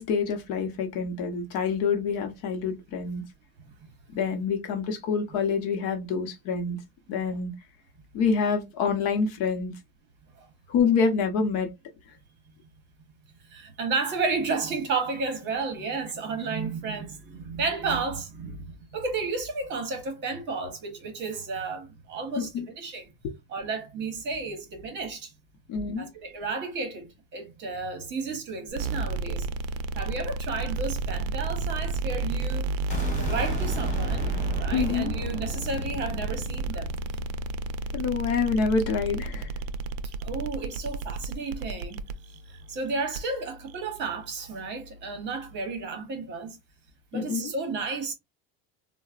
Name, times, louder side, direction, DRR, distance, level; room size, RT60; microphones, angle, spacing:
voice 1, 0.0-3.2 4.1-6.8 7.1-7.5 8.1-9.7 10.7-11.7 22.4-22.6 23.2-23.3 25.7-26.1 34.7-35.1 37.9-39.5 47.1-47.5, left 5 dB, 55° left, 0.8 m, -27 dB
voice 2, 13.5-23.1 23.5-25.3 26.0-29.5 29.9-36.9 40.2-42.0 42.7-46.6 47.1-48.1, right 4 dB, 35° right, 1.0 m, -32 dB
sound 1, 28.7-45.7, right 3 dB, 85° right, 0.5 m, -32 dB
sound 2, 32.9-38.7, left 1 dB, 25° left, 1.8 m, -36 dB
3.9 x 2.1 x 2.4 m
cardioid pair, 165°, 30 cm